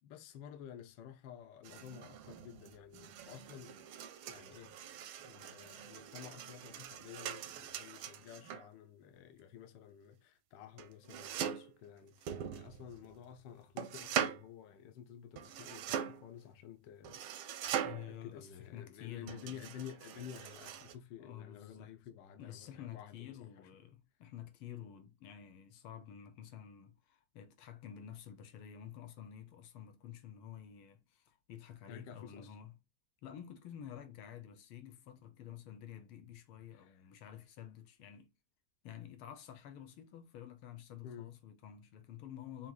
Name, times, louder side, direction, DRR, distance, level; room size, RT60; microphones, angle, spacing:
voice 1, 0.0-3.7 4.3-4.8 5.2-23.7 31.9-32.6 36.7-37.0 41.0-41.3, left 9 dB, 70° left, 1.3 m, -52 dB
sound 1, 1.6-8.7 10.8-11.8 12.2-13.2 13.8-14.5 15.4-16.3 17.0-18.2 19.3-20.9, right 9 dB, 85° right, 1.5 m, -42 dB
voice 2, 17.8-19.7 21.2-21.9 22.4-32.7 33.2-38.3 38.8-42.7, left 10 dB, 85° left, 1.7 m, -50 dB
6.1 x 3.0 x 2.2 m
omnidirectional pair, 2.2 m